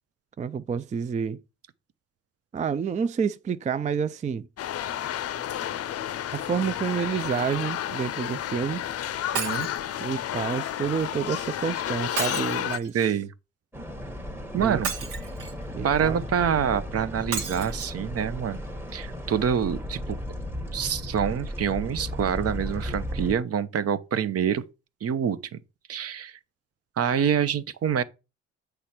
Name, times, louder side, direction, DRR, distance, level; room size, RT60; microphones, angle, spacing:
voice 1, 0.4-1.4 2.5-4.5 6.3-8.9 9.2-9.5 10.0-13.0 14.5-14.8 15.7-16.2, right 7 dB, 25° right, 0.4 m, -29 dB
sound 1, 4.6-12.8, left 10 dB, 50° left, 0.6 m, -31 dB
voice 2, 9.3-9.7 12.9-13.3 14.5-14.9 15.8-18.6 18.9-20.2 20.7-24.7 25.0-25.6 25.9-26.4 27.0-28.0, right 8 dB, 50° right, 0.7 m, -26 dB
Shatter, 9.3-9.8 12.2-13.0 14.8-15.6 17.3-17.9 18.5-18.6 18.9-19.0, right 6 dB, 85° right, 1.7 m, -32 dB
sound 2, 13.7-23.3, left 1 dB, 10° right, 1.1 m, -35 dB
8.1 x 3.3 x 5.8 m
cardioid pair, 90°, 30 cm